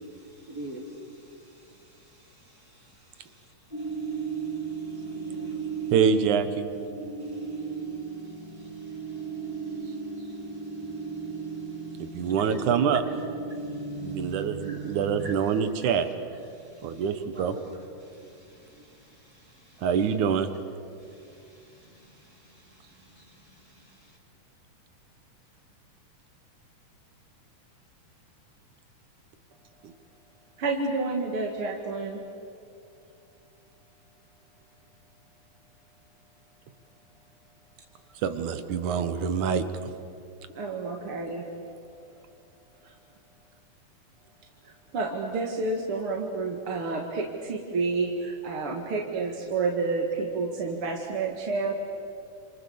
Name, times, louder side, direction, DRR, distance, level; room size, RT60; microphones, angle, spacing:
voice 1, 0.5-0.9 4.9-5.6 8.9-9.0 10.2-10.4 12.2-12.3 13.5-14.1 14.6-14.9 15.2-15.4 16.6-17.0 17.3-17.6 18.1-18.9 21.5-21.6 22.2-22.3 23.1-23.3, right 1 dB, 30° right, 0 dB, 3.0 m, -45 dB
sound 1, 3.7-15.3, right 5 dB, 5° right, 4.0 m, -35 dB
voice 2, 5.9-6.7 12.0-13.0 14.0-16.1 16.8-17.6 19.8-20.5 29.8-29.9 38.2-39.9, right 7 dB, 70° right, 10 dB, 2.6 m, -25 dB
voice 3, 30.6-32.2 40.5-41.4 42.8-42.9 44.7-51.7, right 3 dB, 45° right, 1 dB, 2.4 m, -29 dB
28.5 x 28.0 x 7.1 m, 2.5 s
omnidirectional pair, 3.8 m